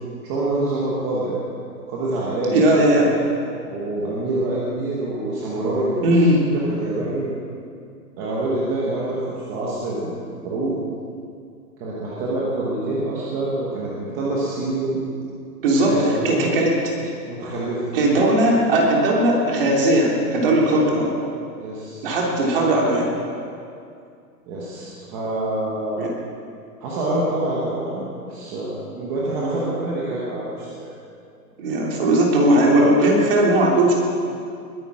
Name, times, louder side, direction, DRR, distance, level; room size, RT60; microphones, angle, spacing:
voice 1, 0.2-1.4 1.9-2.5 3.0-3.2 3.7-6.3 6.7-7.4 8.2-10.2 10.4-10.7 11.8-15.0 15.8-16.5 17.3-17.8 20.7-20.8 21.6-22.1 24.5-26.0 26.8-30.9, right 2 dB, 15° right, -6 dB, 1.1 m, -26 dB
voice 2, 2.5-3.1 6.0-6.5 15.6-16.8 17.9-21.1 22.0-23.2 25.9-26.1 31.6-33.9, right 1 dB, 35° right, -2 dB, 3.1 m, -18 dB
20.5 x 10.0 x 6.2 m, 2.4 s
hypercardioid pair, 175°, 48 cm